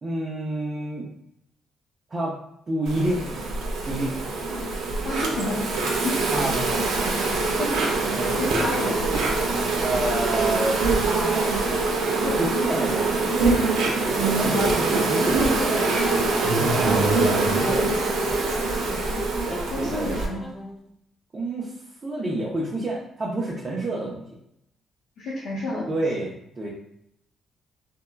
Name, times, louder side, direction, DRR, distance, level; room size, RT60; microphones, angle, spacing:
voice 1, 0.0-1.0 2.1-2.4 2.7-3.2 3.9-4.1 6.3-7.3 8.2-8.4 9.8-13.5 14.1-15.9 16.3-18.2 18.8-19.0 19.5-20.2 21.3-24.3 25.9-26.7, right 1 dB, 35° right, -4 dB, 0.6 m, -29 dB
Insect, 2.9-20.3, right 3 dB, 85° right, 0.6 m, -24 dB
voice 2, 5.0-5.6 6.0-6.2 7.6-8.1 8.4-9.2 14.3-14.5 19.1-19.3 19.7-20.6 25.2-25.9, left 1 dB, 80° left, -8 dB, 0.8 m, -31 dB
sound 1, 13.5-14.6 15.4-20.9, left 1 dB, 15° left, 0.5 m, -36 dB
3.6 x 2.2 x 2.3 m, 0.76 s
cardioid pair, 90°, 0 cm